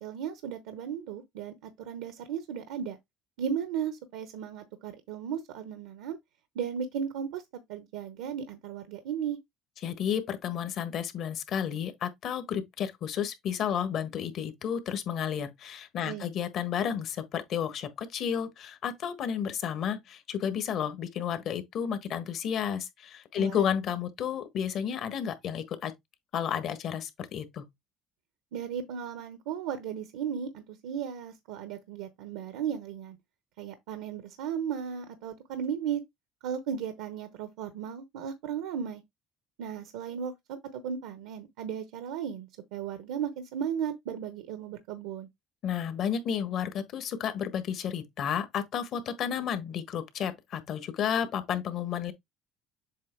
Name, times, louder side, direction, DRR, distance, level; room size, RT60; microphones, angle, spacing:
voice 1, 0.0-3.0 3.4-6.2 6.5-7.4 7.7-9.4 16.0-16.3 23.4-23.6 28.5-33.2 33.6-36.0 36.4-39.0 39.6-45.3, right 8 dB, 85° right, 0.9 m, -35 dB
voice 2, 9.8-25.9 26.3-27.7 45.6-52.1, left 8 dB, 60° left, 1.4 m, -32 dB
7.5 x 2.9 x 4.5 m
supercardioid pair, 90°, 0 cm